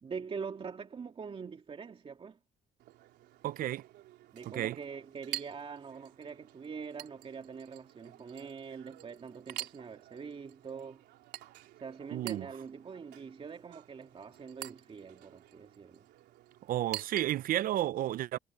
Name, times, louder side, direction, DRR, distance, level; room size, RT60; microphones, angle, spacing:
voice 1, 0.0-2.4 4.3-11.1 11.8-16.1, right 5 dB, 35° right, 2.6 m, -44 dB
Chink clink, 2.8-17.8, right 16 dB, 80° right, 3.8 m, -48 dB
voice 2, 3.4-3.8 4.5-4.8 12.1-12.5 16.7-18.4, right 13 dB, 55° right, 0.5 m, -32 dB
cardioid pair, 110°, 17 cm